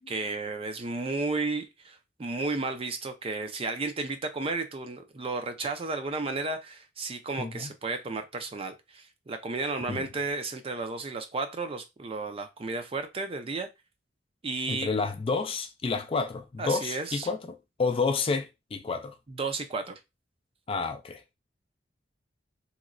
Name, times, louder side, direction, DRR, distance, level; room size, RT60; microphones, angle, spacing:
voice 1, 0.1-13.7 14.4-14.9 16.6-17.3 19.3-20.0, right 3 dB, 30° right, 0.5 m, -33 dB
voice 2, 7.4-7.7 9.9-10.1 14.7-19.1 20.7-21.4, left 4 dB, 30° left, 0.4 m, -30 dB
3.1 x 3.0 x 2.5 m
head